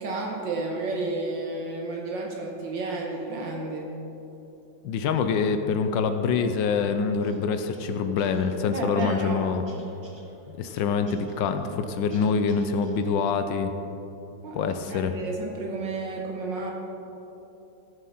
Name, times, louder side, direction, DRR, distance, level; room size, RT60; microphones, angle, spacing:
voice 1, 0.0-3.9 8.7-9.4 14.4-16.7, right 3 dB, 75° right, 0 dB, 1.7 m, -32 dB
voice 2, 4.8-9.6 10.5-13.7 14.5-15.2, left 5 dB, 75° left, 8 dB, 1.3 m, -25 dB
sound 1, 7.2-13.2, right 1 dB, 15° right, 1.2 m, -45 dB
15.0 x 7.2 x 4.3 m, 3.0 s
omnidirectional pair, 2.1 m